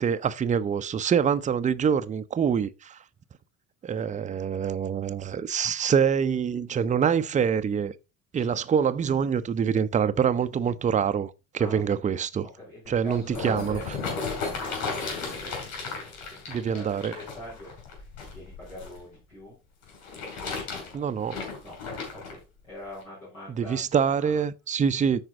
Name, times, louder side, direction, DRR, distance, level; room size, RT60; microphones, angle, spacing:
voice 1, 0.0-3.0 3.8-7.9 8.3-11.3 11.6-12.5 12.9-13.8 16.5-17.1 20.9-21.4 23.6-25.2, right 7 dB, 20° right, 0.6 m, -25 dB
voice 2, 12.4-19.6 21.6-21.8 22.1-22.4 22.6-24.4, left 1 dB, 85° left, 4.4 m, -44 dB
sound 1, 12.9-19.0 19.8-22.4 23.0-23.1, left 4 dB, 55° left, 6.3 m, -35 dB
13.5 x 4.9 x 3.8 m
figure-of-eight pair, 60°, 42 cm